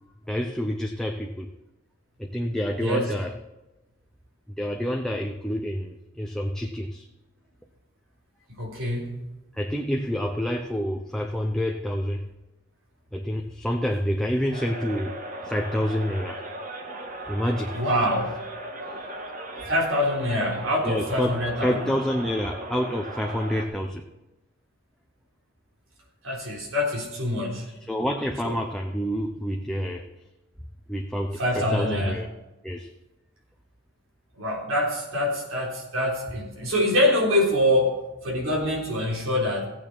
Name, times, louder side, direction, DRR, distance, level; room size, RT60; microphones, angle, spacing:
voice 1, 0.3-1.5 2.2-3.3 4.6-7.1 9.6-12.3 13.1-15.1 15.4-16.4 17.3-17.8 19.6-19.7 20.8-24.0 27.9-30.1 30.9-32.3 32.6-32.9, equal, 5° left, 2 dB, 0.7 m, -28 dB
voice 2, 8.6-9.2 17.7-18.4 19.7-21.9 26.2-27.7 28.4-28.5 31.4-32.2 34.4-39.6, left 1 dB, 85° right, -1 dB, 3.8 m, -25 dB
sound 1, 14.5-23.7, right 1 dB, 40° right, 1.6 m, -37 dB
15.5 x 8.7 x 4.4 m, 1.0 s
head